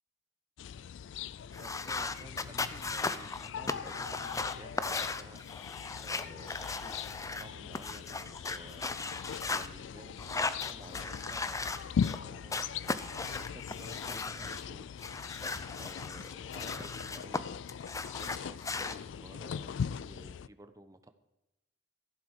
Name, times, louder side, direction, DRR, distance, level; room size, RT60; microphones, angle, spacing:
sound 1, 0.6-20.5, left 7 dB, 70° left, 0.3 m, -40 dB
sound 2, 1.5-7.4 7.7-9.7 10.2-12.2 12.5-14.6 15.0-17.4 17.7-19.0, left 3 dB, 15° left, 0.6 m, -37 dB
voice 1, 1.6-5.4 6.0-7.0 7.4-8.8 9.5-14.9 15.8-17.4 18.1-21.1, right 1 dB, 20° right, 10 dB, 0.9 m, -53 dB
14.0 x 11.5 x 4.9 m, 0.95 s
head